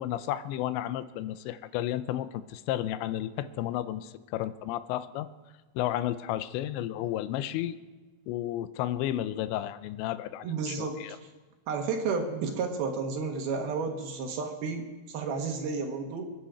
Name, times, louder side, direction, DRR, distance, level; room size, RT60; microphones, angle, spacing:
voice 1, 0.0-5.3 5.8-7.8 8.3-11.2, left 13 dB, 85° left, 13 dB, 2.9 m, -32 dB
voice 2, 10.4-11.2 11.7-16.3, right 4 dB, 65° right, 3 dB, 3.0 m, -32 dB
28.5 x 10.0 x 4.9 m, 1.3 s
omnidirectional pair, 5.1 m